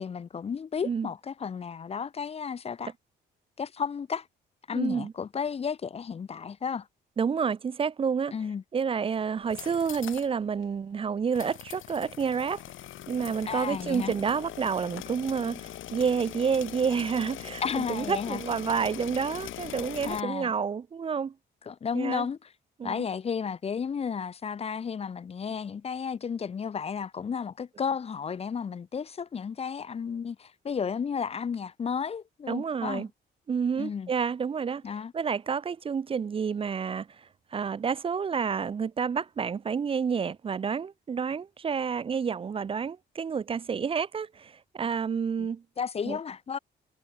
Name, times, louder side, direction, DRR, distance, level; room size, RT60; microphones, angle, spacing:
voice 1, 0.0-2.9 3.6-4.3 4.7-6.9 8.3-8.6 13.5-14.1 17.6-18.4 20.0-20.5 21.7-22.4 22.8-33.1 33.8-34.1 34.8-35.1 45.4-45.5 45.8-46.6, left 6 dB, 30° left, 0.5 m, -33 dB
voice 2, 4.7-5.1 7.2-8.3 8.7-12.6 13.1-21.3 21.9-22.3 22.8-23.0 32.5-33.1 33.5-34.8 35.1-45.6 46.1-46.2, right 6 dB, 30° right, 0.4 m, -29 dB
sound 1, 9.4-10.3 10.6-10.7 11.3-20.2, left 13 dB, 80° left, 4.1 m, -41 dB
cardioid pair, 90°, 20 cm